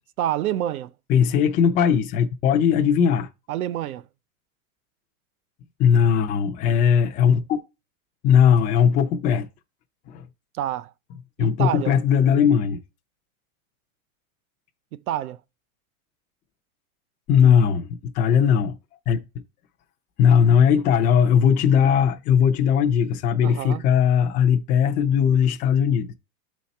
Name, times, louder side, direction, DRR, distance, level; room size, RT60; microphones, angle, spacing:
voice 1, 0.2-0.9 3.5-4.0 10.6-10.9 11.4-11.9 14.9-15.4 23.4-23.8, right 12 dB, 80° right, 0.8 m, -27 dB
voice 2, 1.1-3.3 5.8-7.6 8.2-9.5 10.1-10.2 11.4-12.8 17.3-18.8 19.1-19.2 20.2-26.1, left 7 dB, 20° left, 0.4 m, -19 dB
11.5 x 4.2 x 4.2 m
supercardioid pair, 145°, 42 cm